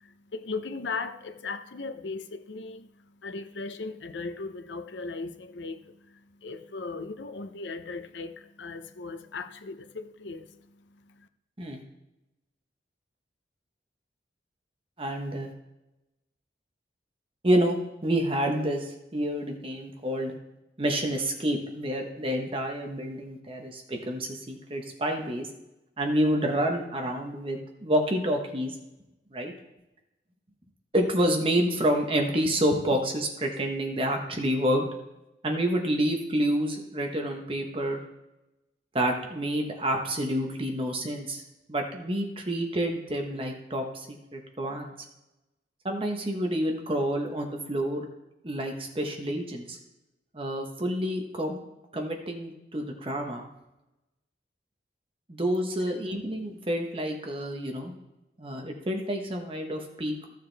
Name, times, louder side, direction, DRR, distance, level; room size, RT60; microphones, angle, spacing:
voice 1, 0.0-11.3, left 4 dB, 85° left, 0.7 m, -38 dB
voice 2, 15.0-15.5 17.4-17.8 18.0-20.3 20.8-25.5 26.0-28.8 29.3-29.5 30.9-34.9 35.4-38.0 38.9-41.4 41.7-44.9 45.8-48.1 48.4-49.8 50.3-51.6 51.9-53.5 55.3-57.9 58.4-60.2, right 1 dB, 30° right, 1.1 m, -28 dB
14.5 x 6.5 x 3.4 m
head